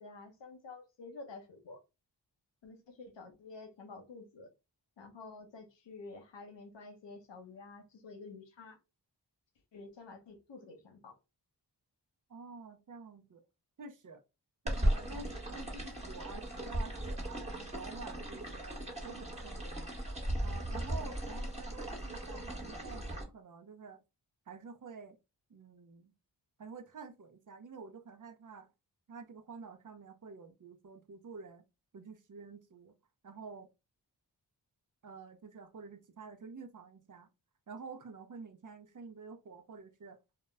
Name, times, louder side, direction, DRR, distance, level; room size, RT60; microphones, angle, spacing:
voice 1, 0.0-1.8 2.6-4.5 5.0-8.8 9.7-11.2 21.1-21.2, left 3 dB, 75° left, 0.8 m, -50 dB
voice 2, 12.3-13.4 13.8-14.2 14.6-18.7 19.0-19.9 20.4-24.0 24.5-25.2 25.5-26.1 26.6-28.7 29.1-31.7 31.9-33.0 33.2-33.7 35.0-37.3 37.7-40.2, right 4 dB, 45° right, 0.6 m, -49 dB
sound 1, 14.7-23.2, right 1 dB, 15° right, 1.2 m, -37 dB
2.2 x 2.0 x 3.2 m
cardioid pair, 45°, 43 cm